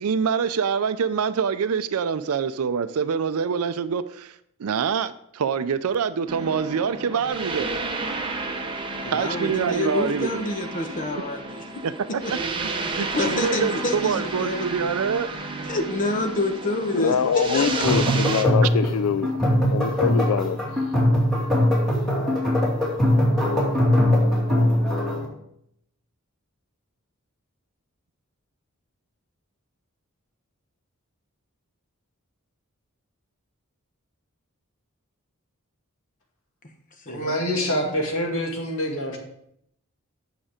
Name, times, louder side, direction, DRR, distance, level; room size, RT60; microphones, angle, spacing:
voice 1, 0.0-7.8 9.1-10.4 11.8-12.7 13.0-15.3 18.6-18.7, right 6 dB, 80° right, 0.4 m, -25 dB
sound 1, 6.3-18.4, right 3 dB, 20° right, 0.9 m, -32 dB
voice 2, 9.0-11.6 12.1-12.3 12.9-14.7 15.7-17.8 37.0-37.9, left 2 dB, 35° left, 1.0 m, -28 dB
voice 3, 16.9-19.3 19.7-20.9, left 7 dB, 90° left, 0.3 m, -24 dB
sound 2, 17.7-25.2, left 1 dB, ahead, 2.4 m, -21 dB
voice 4, 37.1-39.2, equal, 65° left, 2.2 m, -26 dB
8.8 x 6.0 x 5.0 m
head